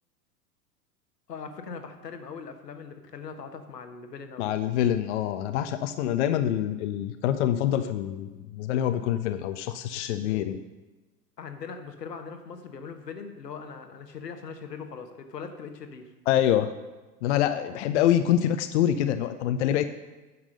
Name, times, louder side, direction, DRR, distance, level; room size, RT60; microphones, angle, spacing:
voice 1, 1.3-4.5 11.4-16.1, left 5 dB, 75° left, 6 dB, 1.2 m, -40 dB
voice 2, 4.4-10.6 16.3-16.7 17.2-19.8, left 11 dB, 45° left, 10 dB, 0.6 m, -25 dB
9.4 x 6.0 x 6.4 m, 1.2 s
figure-of-eight pair, 90°, 49 cm